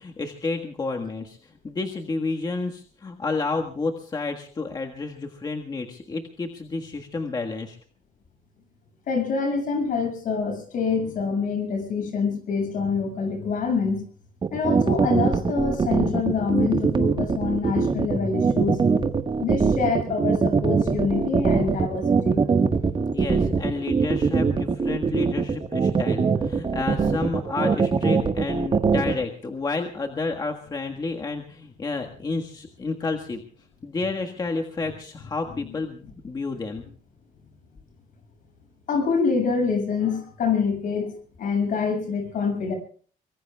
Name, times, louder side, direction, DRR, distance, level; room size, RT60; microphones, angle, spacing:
voice 1, 0.0-7.8 23.1-33.4 33.8-36.8, left 3 dB, 25° left, 2 dB, 1.6 m, -30 dB
voice 2, 9.1-14.0 14.5-19.0 19.4-22.4 38.9-42.8, left 5 dB, 60° left, 6 dB, 7.0 m, -26 dB
sound 1, 14.4-29.1, right 5 dB, 30° right, 1.5 m, -21 dB
24.0 x 23.5 x 2.3 m, 0.43 s
cardioid pair, 125°, 15 cm